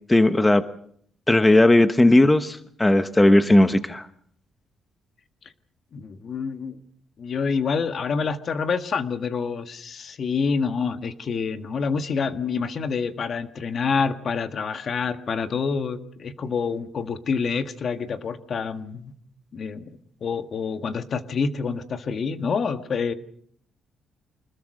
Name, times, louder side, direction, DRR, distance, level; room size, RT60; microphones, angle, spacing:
voice 1, 0.1-0.6 1.3-4.1, left 1 dB, 15° left, 11 dB, 1.1 m, -17 dB
voice 2, 5.9-6.8 7.2-19.1 19.5-19.9 20.2-23.1, left 5 dB, 50° left, 10 dB, 1.7 m, -27 dB
25.5 x 20.5 x 6.5 m, 0.65 s
cardioid pair, 90°, 0 cm